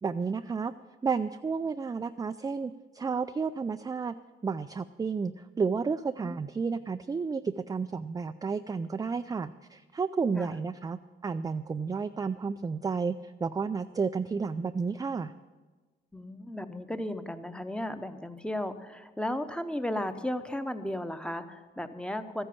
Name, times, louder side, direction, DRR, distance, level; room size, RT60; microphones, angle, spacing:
voice 1, 0.0-0.7 1.0-4.1 4.4-15.3, right 5 dB, 20° right, 9 dB, 0.4 m, -31 dB
voice 2, 16.1-22.4, left 1 dB, 5° left, 9 dB, 0.9 m, -35 dB
13.5 x 10.0 x 7.0 m, 1.3 s
cardioid pair, 90°, 20 cm